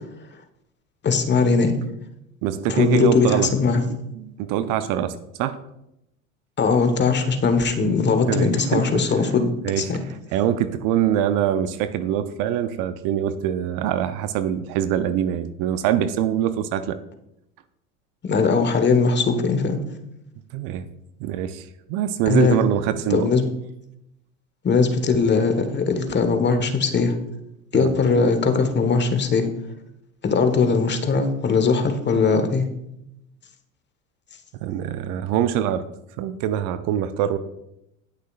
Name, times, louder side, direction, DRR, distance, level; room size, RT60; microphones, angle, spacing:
voice 1, 1.0-1.8 2.7-3.9 6.6-10.0 18.2-19.8 22.3-22.6 23.1-23.5 24.6-27.2 27.7-29.5 30.2-32.7, left 4 dB, 25° left, 7 dB, 1.4 m, -20 dB
voice 2, 2.4-3.5 4.2-5.6 8.3-8.9 9.6-9.9 10.3-17.0 20.5-20.8 21.2-23.3 27.7-27.9 34.6-35.8 36.2-37.4, right 10 dB, 50° right, 12 dB, 0.7 m, -24 dB
19.5 x 6.5 x 2.5 m, 0.82 s
hypercardioid pair, 80°, 40 cm